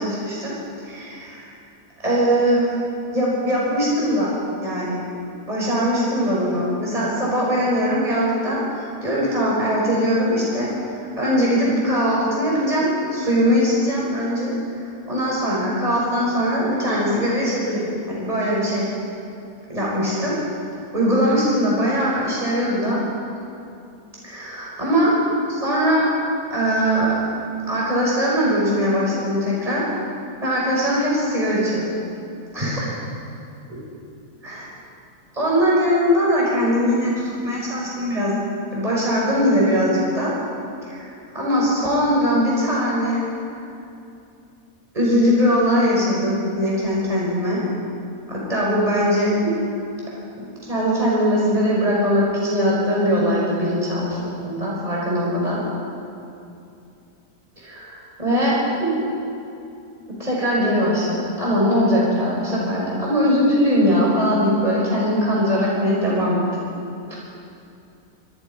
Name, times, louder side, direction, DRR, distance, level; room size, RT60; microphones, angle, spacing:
voice 1, 0.0-1.5 2.0-2.8 3.1-4.3 4.6-5.1 5.5-10.7 11.2-18.9 19.7-20.4 20.9-23.0 24.2-26.1 26.5-27.2 27.7-29.9 30.4-31.8 32.5-32.9 34.4-34.6 35.3-38.4 38.7-40.3 40.9-41.1 41.3-43.2 44.9-47.6 48.3-49.6 50.7-55.6 57.6-57.8 58.2-59.0 60.2-66.4 67.1-67.2, equal, 25° right, -6 dB, 6.0 m, -21 dB
26.5 x 25.5 x 5.5 m, 2.6 s
omnidirectional pair, 1.6 m